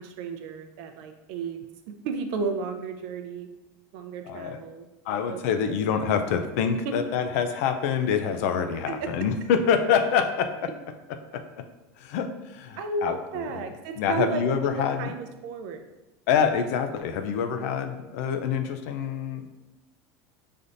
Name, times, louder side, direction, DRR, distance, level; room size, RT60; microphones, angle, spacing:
voice 1, 0.0-1.6 2.0-3.5 3.9-5.4 6.8-6.9 8.9-9.1 12.8-15.8, right 4 dB, 65° right, 6 dB, 0.5 m, -33 dB
voice 2, 4.2-4.6 5.1-10.7 11.3-11.4 12.0-15.1 16.3-19.5, left 7 dB, 75° left, 8 dB, 0.5 m, -26 dB
5.5 x 3.3 x 2.6 m, 1.0 s
supercardioid pair, 140°, 8 cm